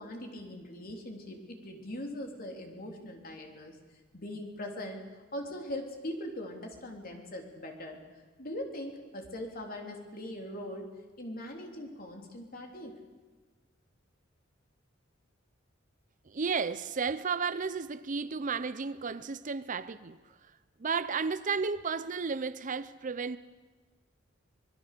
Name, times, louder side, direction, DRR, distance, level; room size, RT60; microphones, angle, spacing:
voice 1, 0.0-3.8 4.1-5.0 5.3-8.0 8.4-10.9 11.2-12.9, left 1 dB, 50° left, 3.5 m, -41 dB
voice 2, 16.3-20.2 20.8-23.4, right 5 dB, 40° right, 0.6 m, -33 dB
25.5 x 20.5 x 6.8 m
head